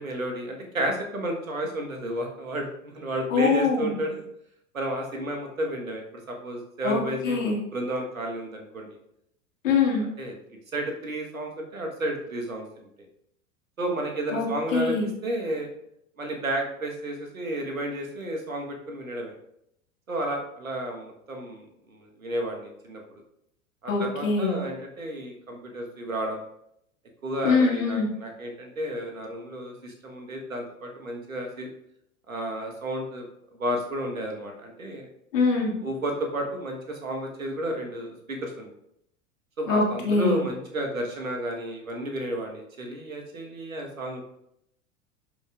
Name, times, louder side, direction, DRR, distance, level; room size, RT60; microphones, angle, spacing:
voice 1, 0.0-4.3 4.7-8.9 10.2-10.3 10.7-12.9 13.8-15.0 15.2-15.7 16.2-19.3 20.1-21.6 21.9-23.0 23.8-26.4 27.2-31.7 32.3-33.2 33.6-35.1 35.8-38.7 39.6-44.2, right 1 dB, 85° right, 2 dB, 1.6 m, -32 dB
voice 2, 3.3-4.0 6.8-7.6 9.6-10.1 14.3-15.1 23.9-24.6 27.4-28.1 35.3-35.8 39.7-40.4, left 4 dB, 70° left, -1 dB, 2.2 m, -23 dB
11.5 x 5.5 x 2.5 m, 0.76 s
figure-of-eight pair, 85°, 40 cm